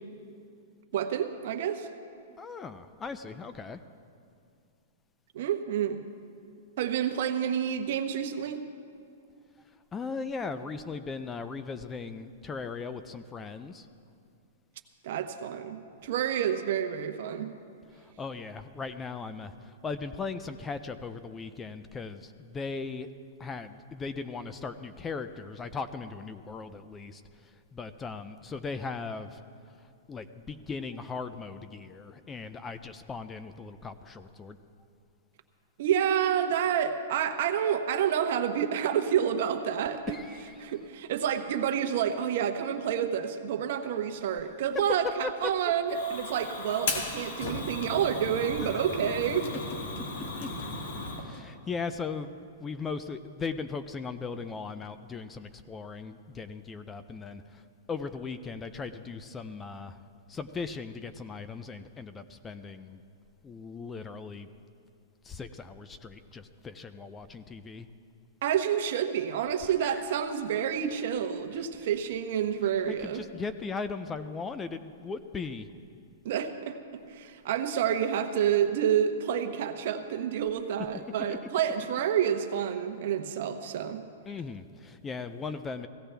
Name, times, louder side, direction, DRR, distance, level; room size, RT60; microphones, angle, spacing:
voice 1, 0.9-1.9 5.3-6.0 6.8-8.6 15.0-17.5 35.8-40.2 40.6-49.5 68.4-73.2 76.2-76.8 77.1-84.1, right 9 dB, 60° right, 7 dB, 1.0 m, -29 dB
voice 2, 2.4-3.8 9.9-13.9 17.9-23.1 23.4-29.4 30.1-34.6 40.1-40.7 44.4-44.5 45.2-45.3 48.6-48.8 50.2-50.9 51.2-52.3 52.6-60.0 60.3-63.0 63.4-64.5 65.2-67.9 69.8-70.1 71.5-71.7 72.9-75.7 81.3-81.4 84.3-85.9, left 4 dB, 15° left, 11 dB, 0.5 m, -38 dB
Fire, 45.9-51.2, left 3 dB, 70° left, 2.2 m, -36 dB
17.0 x 16.0 x 3.4 m, 2.4 s
hypercardioid pair, 145°, 0 cm